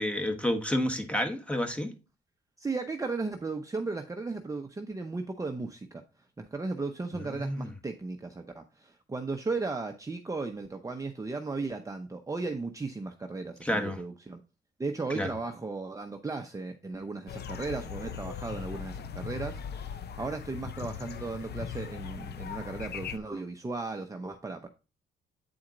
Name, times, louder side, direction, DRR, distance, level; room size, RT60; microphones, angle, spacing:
voice 1, 0.0-1.9 7.3-7.7 13.6-14.0 15.1-15.3, left 1 dB, 5° left, 1.4 m, -30 dB
voice 2, 2.6-6.0 6.4-14.4 14.8-24.7, right 3 dB, 15° right, 0.8 m, -36 dB
sound 1, 17.3-23.2, left 7 dB, 55° left, 0.7 m, -39 dB
8.8 x 4.2 x 3.9 m
cardioid pair, 90°, 20 cm